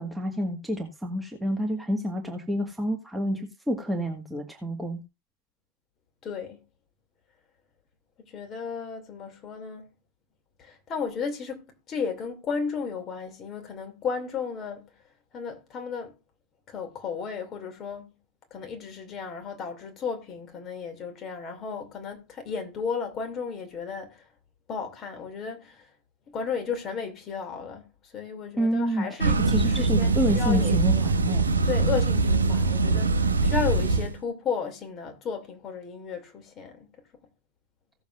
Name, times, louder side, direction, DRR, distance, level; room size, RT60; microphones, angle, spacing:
voice 1, 0.0-5.0 28.6-31.4, equal, 5° right, 1.7 m, -29 dB
voice 2, 6.2-6.6 8.3-9.9 10.6-15.0 15.3-16.2 16.7-18.1 18.5-24.3 24.7-25.9 26.3-31.0 31.6-36.9, left 6 dB, 30° left, 2.7 m, -34 dB
sound 1, 29.2-34.1, right 3 dB, 75° right, 1.3 m, -23 dB
17.0 x 7.1 x 2.6 m
figure-of-eight pair, 90°, 0 cm